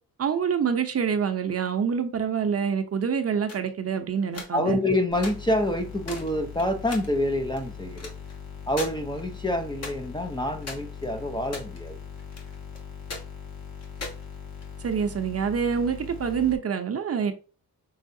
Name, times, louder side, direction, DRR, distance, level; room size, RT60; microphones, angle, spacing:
voice 1, 0.2-4.8 14.8-17.3, right 7 dB, 40° right, 0.7 m, -26 dB
sound 1, 3.5-3.7 4.2-4.9 5.2-5.3 5.7-5.8 6.1-6.3 6.6-7.1 7.5-8.4 8.7-8.9 9.2-9.3 9.8-10.2 10.6-11.9 12.2-12.8 13.1-13.2 13.8-14.9, left 3 dB, 40° left, 1.3 m, -38 dB
voice 2, 4.5-8.1 8.7-12.0, left 1 dB, 10° left, 0.6 m, -27 dB
sound 2, 5.1-16.6, left 6 dB, 75° left, 2.2 m, -41 dB
5.6 x 3.3 x 2.6 m
cardioid pair, 90°, 37 cm